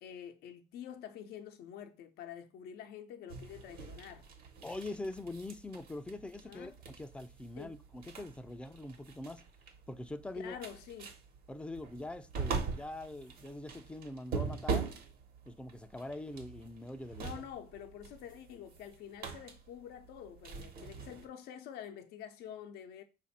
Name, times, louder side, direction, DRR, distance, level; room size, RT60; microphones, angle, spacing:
voice 1, 0.0-4.3 6.4-6.7 7.6-7.8 10.3-11.2 17.2-23.0, left 9 dB, 75° left, 0.6 m, -47 dB
sound 1, 3.3-21.3, right 5 dB, 65° right, 1.0 m, -43 dB
voice 2, 4.6-9.4 9.9-10.6 11.5-14.9 15.5-17.2, left 2 dB, 5° left, 0.4 m, -43 dB
5.0 x 2.5 x 4.1 m
cardioid pair, 130°, 16 cm